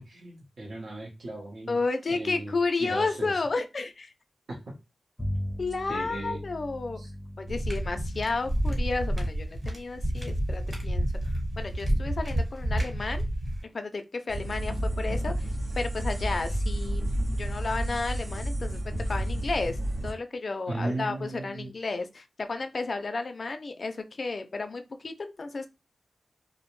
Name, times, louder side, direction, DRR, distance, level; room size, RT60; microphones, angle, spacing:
voice 1, 0.0-1.8 2.1-2.5 2.8-3.4 4.5-4.7 5.9-6.4 7.0-7.1 7.6-7.7 20.7-21.7, right 2 dB, 60° right, 0.7 m, -36 dB
voice 2, 1.7-4.1 5.6-7.0 7.4-11.1 11.6-13.2 13.7-15.5 15.8-25.7, left 3 dB, 45° left, 0.4 m, -32 dB
Bowed string instrument, 5.2-10.8, equal, ahead, 0.6 m, -40 dB
sound 1, 7.5-13.6, equal, 25° right, 1.1 m, -29 dB
sound 2, 14.3-20.1, right 1 dB, 90° right, 1.1 m, -30 dB
2.5 x 2.0 x 3.0 m
wide cardioid pair, 120°, 0 cm